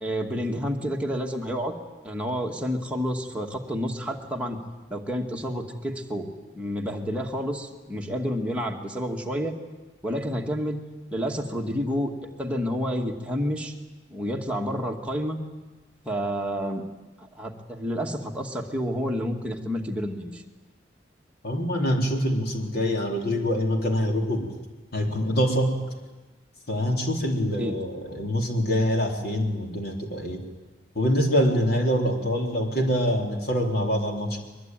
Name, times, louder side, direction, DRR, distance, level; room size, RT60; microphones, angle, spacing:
voice 1, 0.0-1.7 2.0-4.6 4.9-6.3 6.5-9.5 10.0-10.8 11.1-12.1 12.4-13.7 14.1-15.4 16.1-16.9 17.2-20.4 27.6-27.8, equal, 5° right, 0 dB, 2.2 m, -29 dB
voice 2, 21.4-24.5 24.9-25.8 26.7-30.4 31.0-34.4, equal, 55° left, 2 dB, 3.7 m, -25 dB
22.5 x 22.0 x 9.2 m, 1.2 s
head